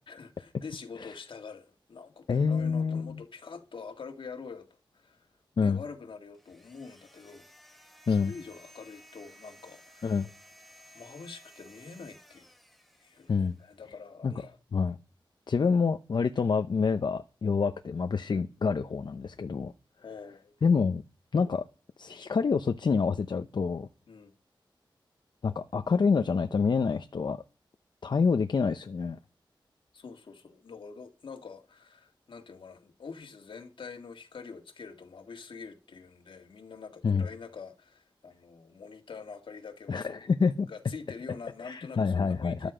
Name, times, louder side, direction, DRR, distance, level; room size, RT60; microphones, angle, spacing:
voice 1, 0.1-4.7 4.9-5.3 5.6-7.5 8.1-10.2 10.9-12.5 13.0-14.6 20.0-20.5 24.1-24.4 29.9-40.1 40.7-42.7, left 5 dB, 75° left, 2.0 m, -45 dB
voice 2, 2.3-3.2 5.6-5.8 8.1-8.3 10.0-10.3 13.3-13.5 14.2-14.3 14.7-15.0 15.5-19.7 20.6-21.0 21.3-21.6 22.0-23.9 25.4-27.4 28.0-29.2 37.0-37.3 39.9-40.7 41.6-42.7, left 5 dB, 60° left, 0.7 m, -27 dB
sound 1, 6.3-13.7, equal, ahead, 1.5 m, -56 dB
13.5 x 12.0 x 5.0 m
wide cardioid pair, 130°, 9 cm